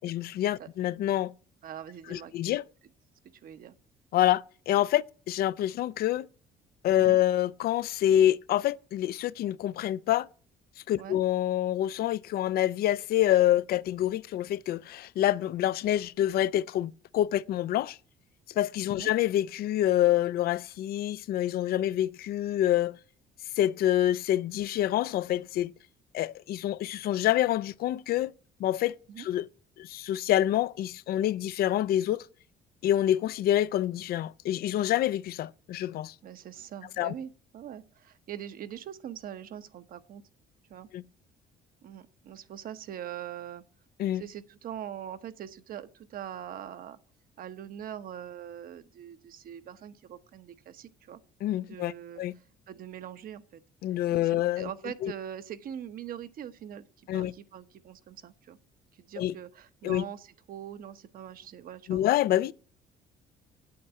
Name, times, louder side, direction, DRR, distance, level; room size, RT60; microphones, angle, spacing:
voice 1, 0.0-1.3 2.1-2.6 4.1-6.3 6.8-10.3 10.9-18.0 18.6-23.0 23.6-25.7 26.1-28.3 28.6-29.5 29.8-32.2 32.8-36.1 37.0-37.1 40.9-41.0 44.0-44.2 51.4-52.3 53.8-54.7 55.0-55.1 57.1-57.3 59.2-59.3 59.8-60.0 61.9-62.5, left 12 dB, 65° left, 0.5 m, -27 dB
voice 2, 1.6-2.3 3.4-3.7 7.0-7.2 11.0-11.2 19.0-19.1 29.1-29.3 36.2-40.2 40.7-40.9 41.8-43.6 44.1-47.0 47.4-51.2 51.6-53.6 54.1-56.9 57.1-58.6 59.0-62.0, right 10 dB, 60° right, 1.0 m, -42 dB
8.6 x 8.6 x 8.0 m
cardioid pair, 110°, 17 cm